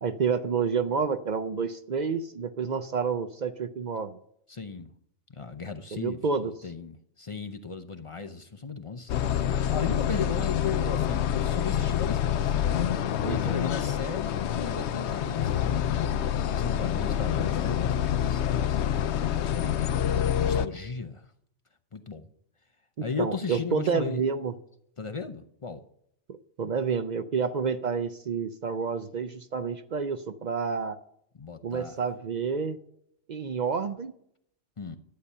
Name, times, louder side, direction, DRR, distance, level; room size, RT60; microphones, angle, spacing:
voice 1, 0.0-4.2 5.9-6.5 13.2-13.5 23.2-24.5 26.3-31.0 31.6-32.8 33.3-34.1, right 5 dB, 55° right, 10 dB, 0.5 m, -29 dB
voice 2, 4.5-4.9 5.3-12.6 13.2-18.5 19.5-19.9 20.4-21.3 21.9-22.3 23.0-24.2 25.0-25.8 31.4-32.0 34.8-35.0, left 5 dB, 40° left, 7 dB, 0.5 m, -36 dB
sound 1, 9.1-20.7, left 9 dB, 75° left, 0.9 m, -27 dB
11.5 x 8.3 x 5.5 m, 0.72 s
omnidirectional pair, 1.2 m